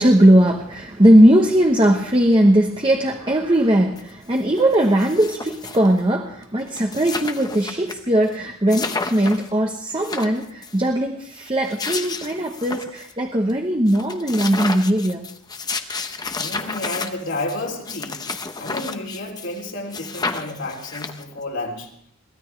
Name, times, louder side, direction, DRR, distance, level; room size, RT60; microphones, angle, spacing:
voice 1, 0.0-15.3, right 1 dB, 25° right, 2 dB, 1.0 m, -18 dB
sound 1, 4.0-4.1 4.3-6.0 6.4-6.5 6.7-7.9 8.3-8.4 8.7-9.5 9.9-10.8 11.5-13.1 13.5-13.6 13.9-19.6 19.9-21.4, left 4 dB, 20° left, 0.8 m, -31 dB
voice 2, 16.3-18.2 18.6-21.9, left 2 dB, 60° left, -1 dB, 3.1 m, -31 dB
23.0 x 16.5 x 3.3 m, 0.72 s
head